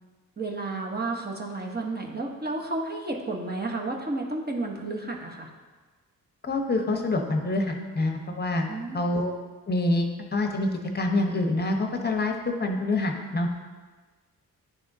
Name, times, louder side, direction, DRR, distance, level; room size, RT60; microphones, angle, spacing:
voice 1, 0.4-5.5 8.7-9.1, right 2 dB, 25° right, 1 dB, 1.0 m, -32 dB
voice 2, 6.4-8.7 8.9-9.3 9.7-10.7 10.9-13.5, left 2 dB, 25° left, 4 dB, 0.9 m, -26 dB
10.5 x 3.5 x 2.7 m, 1.3 s
cardioid pair, 70°, 38 cm